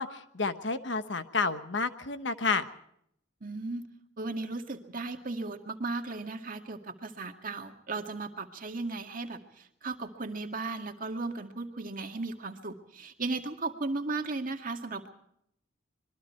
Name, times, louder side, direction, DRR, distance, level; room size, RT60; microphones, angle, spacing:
voice 1, 0.0-2.7, left 4 dB, 65° left, 10 dB, 1.3 m, -30 dB
voice 2, 3.4-3.9 4.2-15.1, right 3 dB, 45° right, 5 dB, 2.1 m, -36 dB
25.5 x 22.5 x 4.5 m, 0.73 s
head